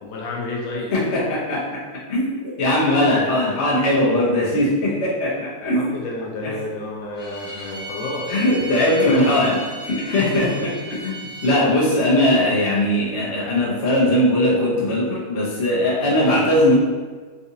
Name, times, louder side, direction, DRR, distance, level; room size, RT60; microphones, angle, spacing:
voice 1, 0.0-0.9 5.6-9.5 10.2-10.6, left 2 dB, 80° left, -2 dB, 1.3 m, -31 dB
voice 2, 0.9-1.8 2.1-5.9 6.4-6.5 8.3-9.6 9.8-16.7, left 1 dB, 50° left, -6 dB, 0.9 m, -20 dB
Bowed string instrument, 7.1-11.6, right 2 dB, 5° right, 0.8 m, -35 dB
3.9 x 2.5 x 2.7 m, 1.4 s
omnidirectional pair, 2.1 m